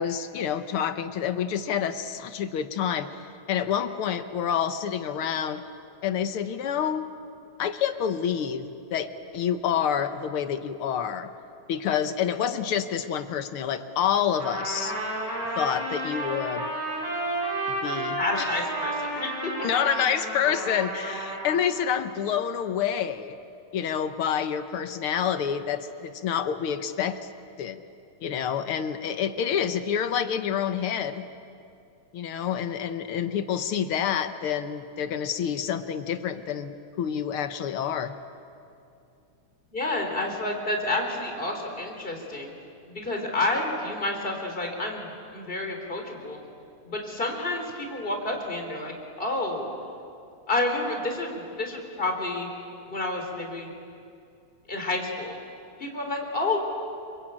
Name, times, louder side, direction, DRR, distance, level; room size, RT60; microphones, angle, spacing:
voice 1, 0.0-3.2 3.5-5.6 6.0-7.1 7.6-9.1 9.3-11.3 11.7-14.9 15.5-16.7 17.7-18.7 19.6-23.4 23.7-27.3 27.6-27.8 28.2-31.3 32.1-38.1, left 8 dB, 65° left, 10 dB, 1.5 m, -28 dB
Trumpet, 14.4-21.6, right 1 dB, 85° right, 8.9 m, -31 dB
voice 2, 18.2-19.7 39.7-42.5 42.9-46.4 46.8-48.9 49.2-49.7 50.5-52.5 52.9-53.7 54.7-55.4 55.8-56.6, left 2 dB, 15° left, 2 dB, 3.7 m, -29 dB
28.0 x 23.5 x 8.8 m, 2.6 s
omnidirectional pair, 3.4 m